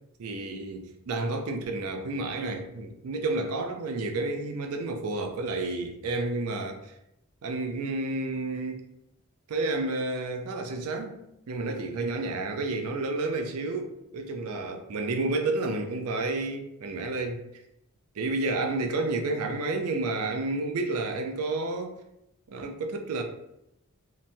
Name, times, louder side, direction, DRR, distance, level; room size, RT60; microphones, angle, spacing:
voice 1, 0.2-6.9 7.4-8.9 9.5-11.2 11.5-17.4 18.2-22.0 22.5-23.2, right 2 dB, 85° right, 4 dB, 0.4 m, -30 dB
2.9 x 2.1 x 2.7 m, 0.82 s
head